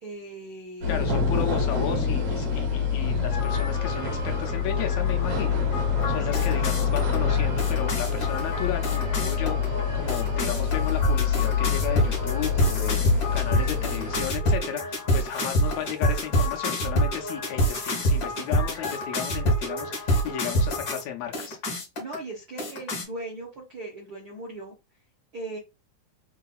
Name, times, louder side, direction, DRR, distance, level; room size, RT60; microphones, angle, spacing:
voice 1, 0.0-0.9 6.2-6.8 22.0-24.7 25.3-25.6, right 2 dB, 80° right, 0.9 m, -39 dB
sound 1, 0.8-14.3, left 6 dB, 60° right, 1.9 m, -26 dB
voice 2, 0.9-21.6, left 10 dB, 75° left, 1.7 m, -34 dB
sound 2, 3.3-21.0 21.3-22.1 22.6-23.0, equal, 40° left, 2.0 m, -28 dB
4.7 x 3.8 x 2.3 m
omnidirectional pair, 3.6 m